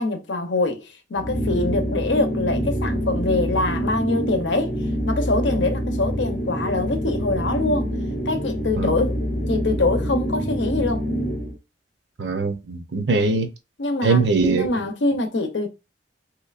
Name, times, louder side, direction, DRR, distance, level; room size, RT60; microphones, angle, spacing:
voice 1, 0.0-7.9 8.3-9.2 9.5-11.0 13.8-15.7, left 2 dB, 75° left, 0.7 m, -24 dB
sound 1, 1.2-11.6, equal, 45° left, 0.8 m, -26 dB
voice 2, 12.2-13.5 14.0-14.8, right 3 dB, 70° right, 0.7 m, -21 dB
3.1 x 3.0 x 2.4 m
head